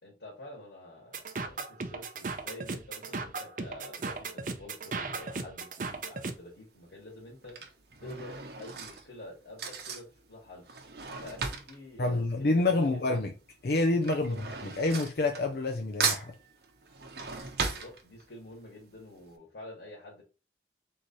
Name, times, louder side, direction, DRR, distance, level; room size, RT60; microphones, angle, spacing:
voice 1, 0.0-7.6 8.0-10.7 11.2-13.3 14.0-14.4 17.7-20.2, left 1 dB, 85° left, 1.9 m, -48 dB
sound 1, 1.1-6.3, right 4 dB, 45° right, 0.6 m, -36 dB
Drawer open or close / Cutlery silverware, 6.0-6.4 7.2-13.1 13.4-15.7 16.0-18.5 18.9-19.0 19.3-19.4, right 5 dB, 70° right, 0.9 m, -36 dB
voice 2, 12.0-13.3 13.6-14.4 14.8-16.3, left 2 dB, 60° left, 0.5 m, -27 dB
3.9 x 3.1 x 3.9 m
head